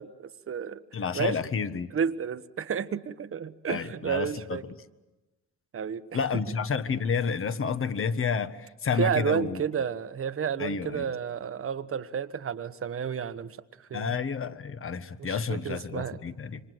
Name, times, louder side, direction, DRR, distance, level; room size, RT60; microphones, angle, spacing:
voice 1, 0.0-0.8 1.1-1.3 1.9-4.6 5.7-6.2 9.0-14.2 15.2-16.2, right 7 dB, 45° right, 13 dB, 1.2 m, -31 dB
voice 2, 0.9-1.9 3.7-4.7 6.1-9.6 10.6-11.1 13.9-16.6, left 6 dB, 45° left, 11 dB, 1.5 m, -30 dB
27.5 x 25.0 x 7.9 m, 1.1 s
cardioid pair, 90°, 30 cm